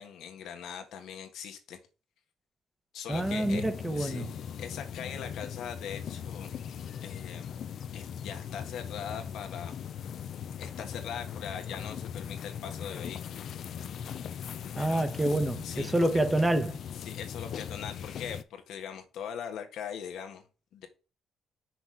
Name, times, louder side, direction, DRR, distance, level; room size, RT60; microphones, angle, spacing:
voice 1, 0.0-1.8 2.9-3.6 3.9-4.3 4.6-6.5 7.0-7.5 7.9-9.7 10.6-13.4 14.8-15.1 15.6-15.9 16.1-16.2 17.0-20.4 20.7-20.9, left 8 dB, 80° left, 1.4 m, -41 dB
sound 1, 3.1-18.4, left 8 dB, 65° left, 0.6 m, -39 dB
voice 2, 3.1-4.3 14.8-16.8, right 1 dB, 15° right, 0.9 m, -27 dB
5.9 x 4.2 x 4.7 m
cardioid pair, 90°, 0 cm